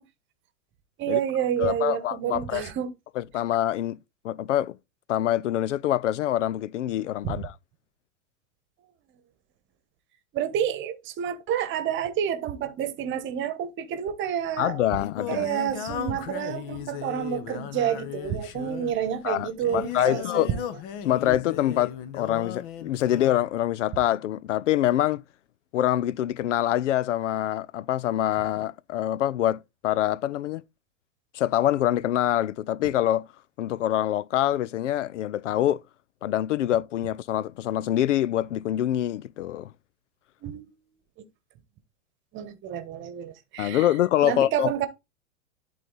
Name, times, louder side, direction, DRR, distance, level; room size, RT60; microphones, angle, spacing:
voice 1, 1.0-2.9 7.2-7.3 10.3-14.8 15.3-20.5 40.4-40.6 42.3-43.8 44.2-44.9, right 9 dB, 30° right, 1.2 m, -29 dB
voice 2, 1.6-2.7 3.2-4.0 4.2-4.8 5.1-7.6 14.6-15.5 19.2-20.5 21.0-25.2 25.7-30.6 31.3-33.3 33.6-35.8 36.2-39.7 43.6-44.7, left 12 dB, 75° left, 0.5 m, -25 dB
Singing, 14.4-23.5, left 9 dB, 45° left, 1.0 m, -37 dB
11.0 x 4.1 x 3.9 m
hypercardioid pair, 105°, 37 cm